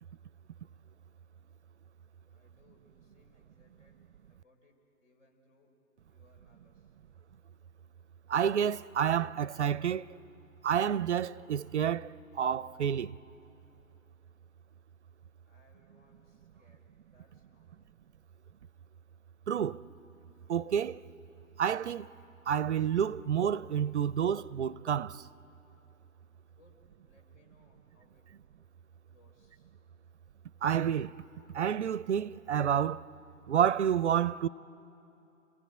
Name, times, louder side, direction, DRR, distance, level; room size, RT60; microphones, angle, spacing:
voice 1, 2.3-4.0 4.3-4.7 5.0-5.7 6.1-6.9 15.5-17.9 26.5-26.8 27.0-28.3 29.0-29.7, left 2 dB, 60° left, 5.9 m, -67 dB
voice 2, 8.3-10.1 10.6-13.2 19.5-19.9 20.5-21.0 21.6-22.1 22.5-25.3 30.6-31.2 31.5-33.0 33.5-34.5, right 8 dB, 55° right, 0.5 m, -29 dB
29.0 x 18.5 x 9.4 m
figure-of-eight pair, 125°, 42 cm